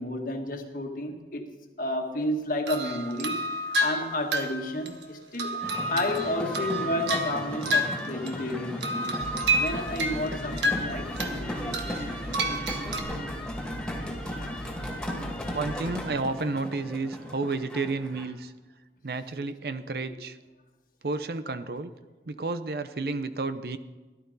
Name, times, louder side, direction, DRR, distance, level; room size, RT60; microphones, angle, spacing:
voice 1, 0.0-1.4 1.8-3.4 3.6-5.6 5.9-9.2 9.6-12.0, left 1 dB, 50° left, 3 dB, 1.7 m, -31 dB
sound 1, 2.7-8.5 8.8-11.4 11.7-13.0, right 1 dB, 80° right, 1.5 m, -30 dB
sound 2, 5.6-18.2, left 1 dB, 5° left, 2.3 m, -36 dB
sound 3, 9.2-16.1, equal, 25° left, 1.7 m, -42 dB
voice 2, 15.5-18.5 19.0-20.4 21.0-21.9 22.3-23.8, right 3 dB, 60° right, 11 dB, 0.6 m, -31 dB
17.5 x 12.0 x 4.1 m, 1.3 s
head